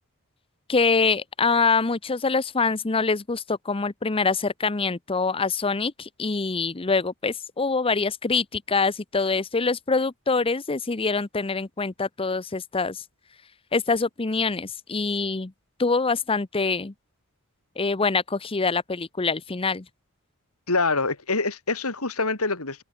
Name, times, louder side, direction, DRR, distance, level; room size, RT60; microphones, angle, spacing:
voice 1, 0.7-13.0 13.7-15.5 15.8-16.9 17.8-19.8, left 4 dB, 25° left, 0.7 m, -25 dB
voice 2, 20.7-22.8, left 3 dB, 75° left, 3.8 m, -25 dB
head